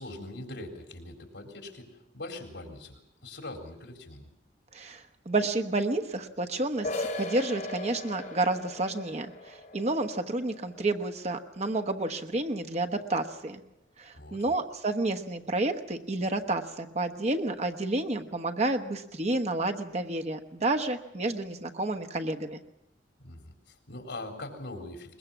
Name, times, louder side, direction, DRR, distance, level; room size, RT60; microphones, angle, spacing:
voice 1, 0.0-1.9 2.1-4.3 14.1-14.5 23.2-25.2, left 2 dB, 75° left, 3 dB, 4.2 m, -42 dB
voice 2, 4.7-13.6 14.0-22.6, right 2 dB, 40° right, 6 dB, 1.2 m, -30 dB
sound 1, 6.8-12.3, left 1 dB, 50° left, 4.0 m, -39 dB
21.5 x 21.5 x 7.3 m, 0.87 s
head